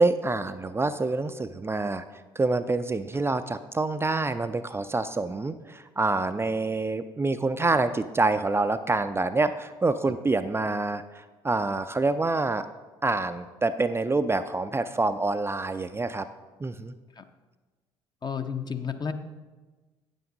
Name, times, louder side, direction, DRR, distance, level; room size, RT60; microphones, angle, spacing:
voice 1, 0.0-2.0 2.4-11.0 11.4-12.7 13.0-16.3 16.6-16.9, right 3 dB, 20° right, 9 dB, 0.4 m, -26 dB
voice 2, 18.2-19.1, left 6 dB, 35° left, 8 dB, 0.8 m, -31 dB
9.1 x 8.0 x 3.9 m, 1.3 s
hypercardioid pair, 50°, 13 cm